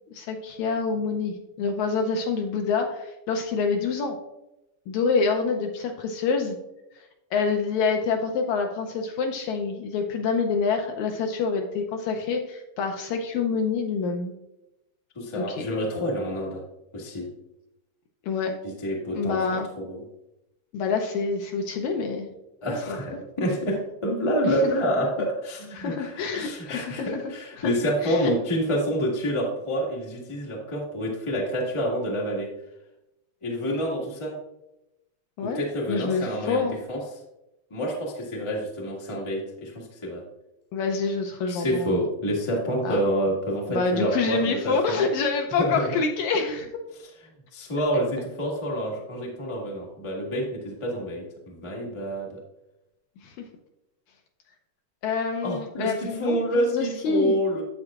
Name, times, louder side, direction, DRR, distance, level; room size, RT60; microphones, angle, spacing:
voice 1, 0.1-4.2 4.9-6.6 7.3-14.3 15.4-15.7 18.2-18.5 19.1-19.7 20.7-22.3 22.7-23.2 24.4-24.6 25.7-27.2 27.6-27.7 28.0-28.3 35.4-35.6 35.9-36.8 40.7-42.0 42.8-43.0 43.7-46.7 53.2-53.4 55.0-57.4, left 4 dB, 75° left, 4 dB, 1.8 m, -27 dB
voice 2, 15.1-16.6 16.9-17.3 18.6-20.0 22.6-32.5 33.4-34.3 35.4-37.0 37.7-40.2 41.5-45.0 45.6-45.9 47.5-52.3 55.4-57.6, equal, 35° left, -3 dB, 0.4 m, -28 dB
9.7 x 7.7 x 2.4 m, 0.90 s
omnidirectional pair, 3.8 m